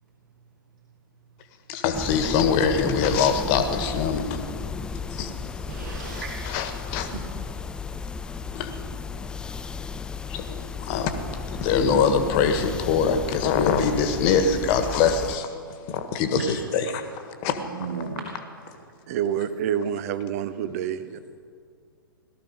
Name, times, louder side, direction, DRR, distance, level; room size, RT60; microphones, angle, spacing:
voice 1, 1.7-4.4 5.1-5.3 6.4-7.1 8.5-8.7 10.3-11.1 11.6-15.5 15.9-17.0 17.4-17.6, left 6 dB, 35° left, 8 dB, 1.5 m, -23 dB
sound 1, 1.9-15.4, left 5 dB, 5° left, 0.3 m, -34 dB
voice 2, 5.7-6.6 7.0-7.2 16.4-16.5 17.6-18.3 21.1-21.2, right 5 dB, 60° right, 0 dB, 2.2 m, -35 dB
voice 3, 19.1-21.2, right 9 dB, 40° right, 13 dB, 0.8 m, -27 dB
18.0 x 13.5 x 5.3 m, 2.1 s
figure-of-eight pair, 110°, 12 cm